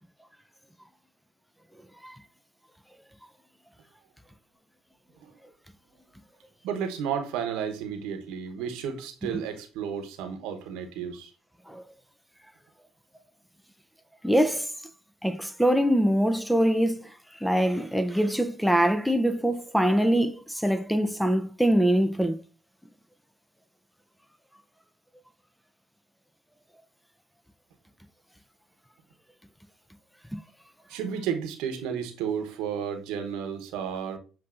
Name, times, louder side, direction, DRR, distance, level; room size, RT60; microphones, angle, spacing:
voice 1, 6.6-11.3 30.9-34.2, right 7 dB, 70° right, 0.9 m, -32 dB
voice 2, 14.2-14.7 15.2-17.1 17.4-22.4 30.3-30.4, equal, ahead, 0.5 m, -23 dB
7.4 x 2.7 x 2.5 m
hypercardioid pair, 55°, 0 cm